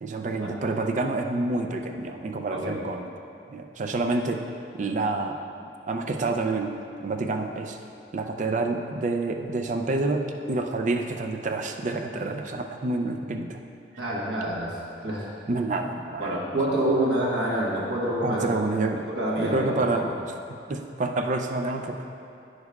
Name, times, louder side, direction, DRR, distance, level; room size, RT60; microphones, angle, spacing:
voice 1, 0.0-3.1 3.5-4.4 4.7-6.8 7.0-7.8 8.1-13.6 15.5-16.5 18.2-19.0 19.4-20.1 20.5-22.0, right 2 dB, 45° right, 4 dB, 0.5 m, -28 dB
voice 2, 14.0-14.8 15.0-15.3 16.2-18.5 19.0-20.1, right 1 dB, 70° right, -6 dB, 1.3 m, -27 dB
9.5 x 6.4 x 2.4 m, 2.7 s
head